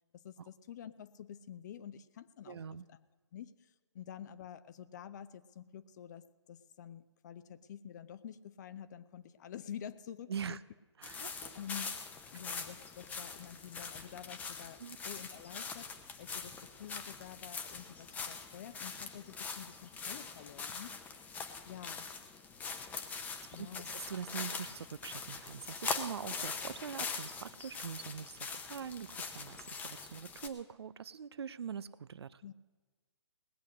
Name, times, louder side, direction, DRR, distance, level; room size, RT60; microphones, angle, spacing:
voice 1, 0.1-2.6 2.9-3.0 3.3-10.6 11.2-11.9 12.3-21.0 21.6-22.1 23.5-24.0 32.4-32.5, left 9 dB, 40° left, 14 dB, 0.6 m, -49 dB
voice 2, 2.5-2.8 10.3-10.6 11.0-11.6 14.8-15.0 23.6-32.4, right 7 dB, 60° right, 18 dB, 0.5 m, -43 dB
sound 1, 11.0-30.5, left 5 dB, 10° left, 0.8 m, -43 dB
19.0 x 8.1 x 6.3 m, 1.3 s
figure-of-eight pair, 135°, 15 cm